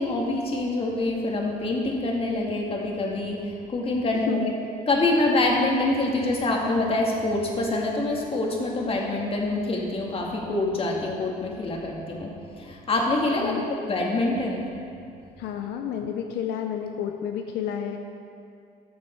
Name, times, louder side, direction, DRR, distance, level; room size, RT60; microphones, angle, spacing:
voice 1, 0.0-4.4 4.9-12.3 12.6-14.7, left 2 dB, 35° left, -1 dB, 2.0 m, -25 dB
voice 2, 15.4-18.0, left 9 dB, 85° left, 4 dB, 0.7 m, -30 dB
14.5 x 7.4 x 4.5 m, 2.4 s
cardioid pair, 110°, 17 cm